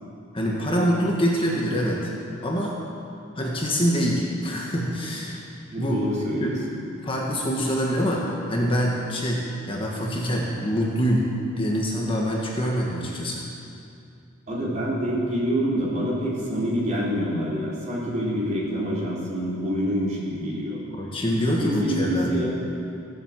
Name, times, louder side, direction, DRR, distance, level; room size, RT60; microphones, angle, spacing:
voice 1, 0.3-2.1 2.4-2.7 3.4-5.4 5.8-6.0 6.4-6.5 7.0-11.2 11.6-13.4 20.9-22.5, equal, 25° left, -3 dB, 1.6 m, -25 dB
voice 2, 5.7-6.8 14.5-20.8 21.4-22.6, equal, 35° right, -6 dB, 3.8 m, -26 dB
16.0 x 8.2 x 7.5 m, 2.6 s
head